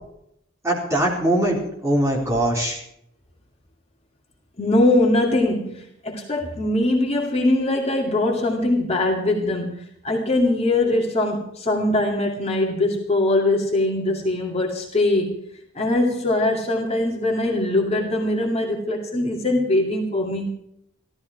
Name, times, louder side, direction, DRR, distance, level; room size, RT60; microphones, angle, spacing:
voice 1, 0.6-2.8, right 1 dB, 15° right, -3 dB, 3.9 m, -21 dB
voice 2, 4.6-15.3 15.7-20.5, left 2 dB, 30° left, -1 dB, 2.2 m, -22 dB
16.0 x 13.0 x 4.8 m, 0.75 s
head